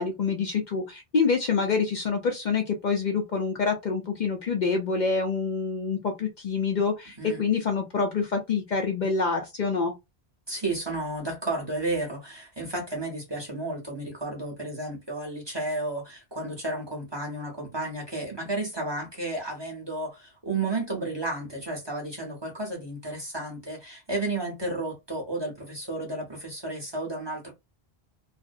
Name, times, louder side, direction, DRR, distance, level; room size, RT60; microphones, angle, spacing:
voice 1, 0.0-9.9, left 5 dB, 55° left, 0.6 m, -26 dB
voice 2, 10.5-27.5, right 2 dB, 25° right, 0.8 m, -32 dB
2.5 x 2.0 x 2.5 m
omnidirectional pair, 1.0 m